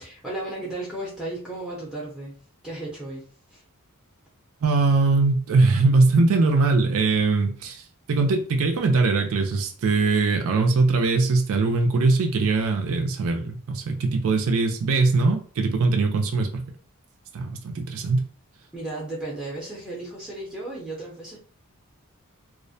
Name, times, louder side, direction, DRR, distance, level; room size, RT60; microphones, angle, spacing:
voice 1, 0.0-2.3 2.6-3.2 3.5-3.6 18.7-21.4, right 2 dB, 5° right, 0.6 m, -34 dB
voice 2, 4.6-16.6 17.3-18.3, right 3 dB, 65° right, 0.4 m, -21 dB
2.4 x 2.1 x 2.6 m
head